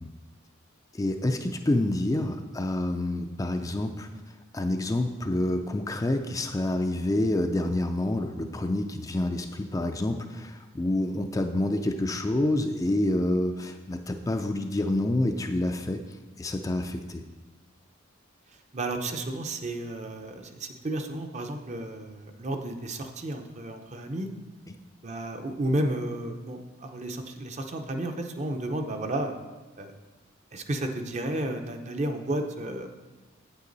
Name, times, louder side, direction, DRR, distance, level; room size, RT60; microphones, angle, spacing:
voice 1, 0.9-17.2 24.7-24.8, left 1 dB, 15° left, 5 dB, 0.4 m, -28 dB
voice 2, 18.7-24.3 25.0-29.3 29.8-29.9 30.5-32.9, right 1 dB, 35° right, 5 dB, 0.7 m, -32 dB
8.6 x 8.1 x 4.0 m, 1.2 s
head